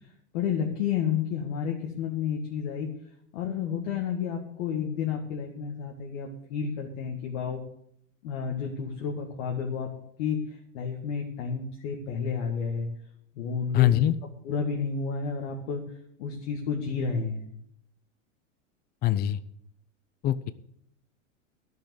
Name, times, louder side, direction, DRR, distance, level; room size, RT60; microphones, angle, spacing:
voice 1, 0.3-2.9 3.3-7.6 8.2-9.9 10.2-12.9 13.4-13.9 14.5-15.8 16.2-17.5, left 6 dB, 65° left, 0 dB, 2.0 m, -31 dB
voice 2, 13.7-14.1 19.0-19.4 20.2-20.5, left 13 dB, 25° left, 16 dB, 0.5 m, -22 dB
11.5 x 6.7 x 7.7 m, 0.71 s
hypercardioid pair, 115°, 39 cm